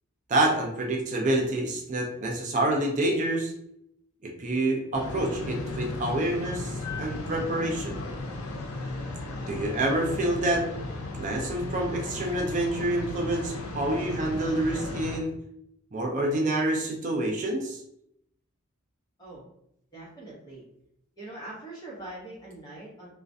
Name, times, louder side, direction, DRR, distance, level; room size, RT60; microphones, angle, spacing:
voice 1, 0.3-3.5 4.2-8.0 9.5-10.6 11.1-15.3 15.9-17.8, right 1 dB, 35° right, 1 dB, 0.3 m, -27 dB
sound 1, 4.9-15.2, left 2 dB, 80° left, 0.5 m, -35 dB
voice 2, 19.9-20.6 21.2-23.1, right 2 dB, 20° left, -6 dB, 0.8 m, -42 dB
2.3 x 2.1 x 2.6 m, 0.77 s
head